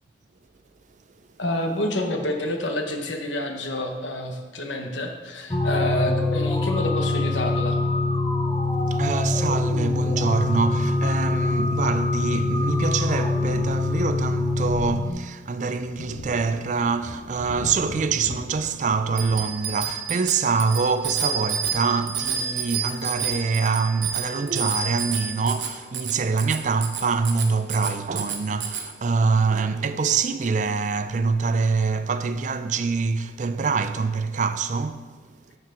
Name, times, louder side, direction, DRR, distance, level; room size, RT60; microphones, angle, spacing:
voice 1, 1.4-7.8, left 1 dB, 85° left, 1.0 m, -28 dB
sound 1, 5.5-15.1, left 2 dB, 20° left, 0.5 m, -24 dB
voice 2, 8.9-35.1, right 4 dB, 40° right, 0.4 m, -25 dB
Thunder, 14.5-24.2, left 2 dB, 60° left, 0.7 m, -43 dB
Bicycle bell, 19.1-28.9, right 7 dB, 75° right, 1.0 m, -30 dB
13.5 x 4.6 x 3.7 m
head